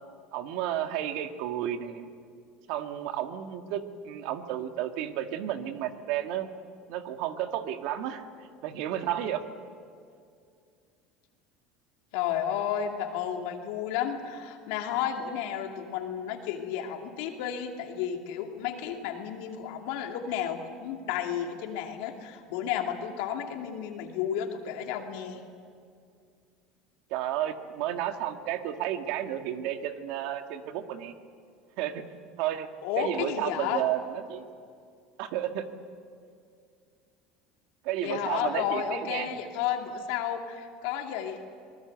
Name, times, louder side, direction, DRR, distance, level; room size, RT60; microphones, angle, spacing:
voice 1, 0.3-2.1 2.7-6.5 6.9-8.2 8.6-9.4 27.1-31.1 31.8-32.0 32.4-32.7 33.0-34.4 35.2-35.7 37.8-39.3, right 11 dB, 70° right, 7 dB, 1.7 m, -32 dB
voice 2, 12.1-25.4 32.8-33.8 38.0-41.4, left 9 dB, 75° left, 3 dB, 2.6 m, -32 dB
24.5 x 19.5 x 8.0 m, 2.3 s
supercardioid pair, 105°, 0 cm